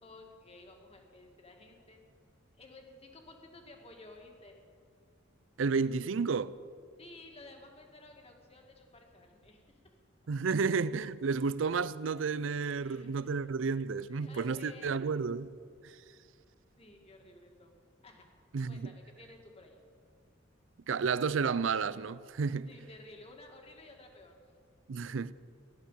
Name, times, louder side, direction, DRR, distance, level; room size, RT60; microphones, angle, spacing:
voice 1, 0.0-2.0 2.6-4.6 7.0-9.8 12.8-13.8 14.1-15.0 16.8-17.8 18.0-18.3 18.7-19.8 22.6-24.4, left 2 dB, 30° left, 2.2 m, -54 dB
voice 2, 5.6-6.5 10.3-15.5 18.5-18.9 20.9-22.7 24.9-25.3, right 5 dB, 75° right, 0.5 m, -31 dB
16.5 x 11.5 x 7.5 m
head